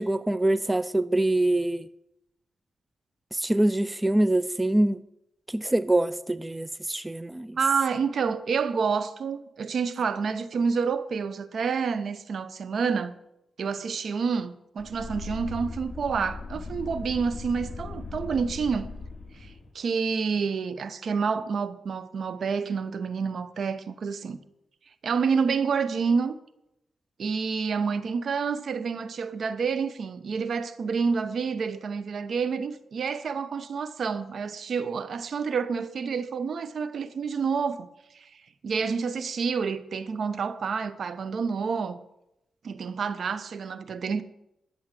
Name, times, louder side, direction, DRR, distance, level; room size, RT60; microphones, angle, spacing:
voice 1, 0.0-1.9 3.3-5.0 5.5-7.6, right 1 dB, 15° right, 0.5 m, -24 dB
voice 2, 7.6-13.2 13.6-18.9 19.4-24.4 25.0-26.4 27.2-37.9 38.1-38.3 38.6-42.0 42.6-44.2, right 5 dB, 65° right, 0.9 m, -28 dB
sound 1, 14.8-19.7, left 4 dB, 55° left, 3.6 m, -38 dB
12.0 x 7.3 x 8.4 m
cardioid pair, 65°, 0 cm